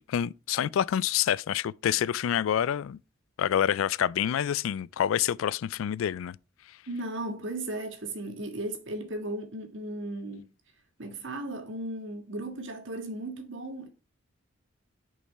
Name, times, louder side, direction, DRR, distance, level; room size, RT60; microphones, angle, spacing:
voice 1, 0.1-3.0 3.4-6.4, left 9 dB, 85° left, 0.3 m, -27 dB
voice 2, 6.9-10.5 11.0-13.9, right 1 dB, 70° right, 1.6 m, -36 dB
6.5 x 5.4 x 3.3 m
head